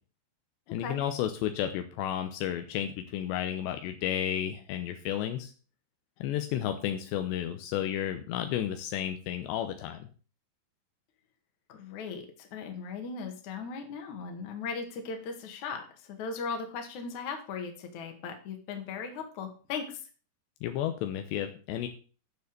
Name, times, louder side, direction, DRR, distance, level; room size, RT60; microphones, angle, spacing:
voice 1, 0.7-5.5 6.2-10.1 20.6-21.9, left 11 dB, 85° left, 7 dB, 3.1 m, -32 dB
voice 2, 11.7-15.8 16.1-19.9, left 5 dB, 55° left, 3 dB, 2.7 m, -38 dB
9.4 x 7.0 x 6.7 m, 0.37 s
omnidirectional pair, 4.9 m